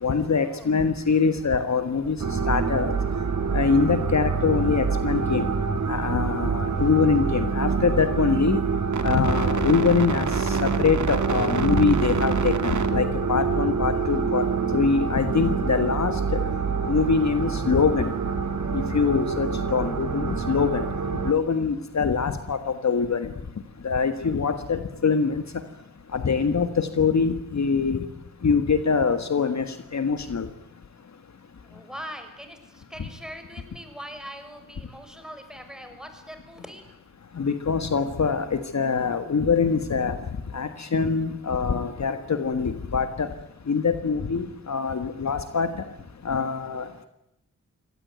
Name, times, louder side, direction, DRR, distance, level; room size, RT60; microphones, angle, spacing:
voice 1, 0.0-2.2 2.5-2.9 3.5-5.5 5.9-8.6 9.0-14.5 14.7-16.1 16.9-18.1 18.7-20.8 21.2-23.3 23.8-25.4 26.1-28.0 28.4-30.5 37.4-40.2 40.5-43.3 43.7-45.8 46.2-47.1, left 5 dB, 55° left, 9 dB, 1.7 m, -24 dB
sound 1, 2.2-21.3, right 5 dB, 60° right, 2.3 m, -26 dB
voice 2, 31.6-36.8, equal, ahead, 7 dB, 6.2 m, -41 dB
24.0 x 18.0 x 9.5 m, 0.86 s
cardioid pair, 55°, 32 cm